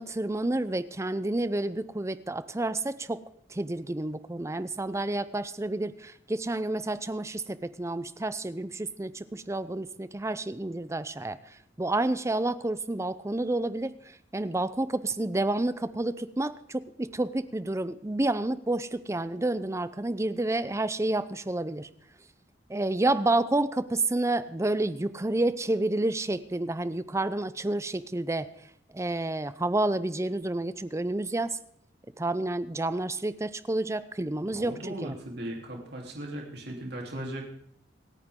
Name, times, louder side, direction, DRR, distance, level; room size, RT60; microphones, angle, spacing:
voice 1, 0.0-3.2 3.5-21.9 22.7-28.5 28.9-31.6 32.2-35.1, right 2 dB, 15° right, 14 dB, 0.6 m, -29 dB
voice 2, 34.4-37.4, right 1 dB, 60° right, 0 dB, 3.4 m, -38 dB
27.5 x 9.2 x 3.7 m, 0.68 s
head